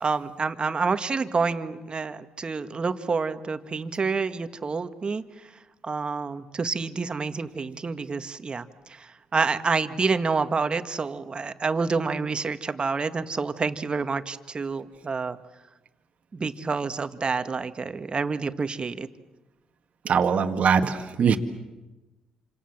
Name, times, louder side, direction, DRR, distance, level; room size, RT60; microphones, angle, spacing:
voice 1, 0.0-5.2 5.8-15.4 16.3-19.1, right 4 dB, 40° right, 9 dB, 1.8 m, -28 dB
voice 2, 20.1-21.4, right 6 dB, 60° right, 5 dB, 1.9 m, -22 dB
27.5 x 26.5 x 7.4 m, 1.1 s
supercardioid pair, 55°, 3 cm